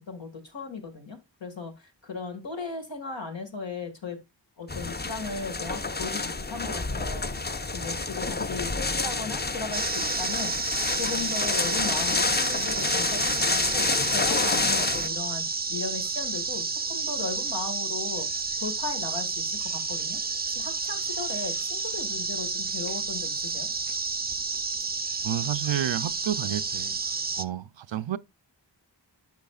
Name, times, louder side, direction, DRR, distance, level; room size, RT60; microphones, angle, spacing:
voice 1, 0.0-4.2 4.6-10.6 10.9-15.4 15.7-20.2 20.5-23.7, left 4 dB, 85° left, 1.9 m, -37 dB
sound 1, 4.7-15.1, left 3 dB, 25° left, 0.6 m, -28 dB
sound 2, 9.7-27.4, right 4 dB, 25° right, 0.4 m, -30 dB
voice 2, 25.2-27.0 27.4-28.2, right 11 dB, 90° right, 0.5 m, -30 dB
10.5 x 6.2 x 2.3 m
wide cardioid pair, 45°, 44 cm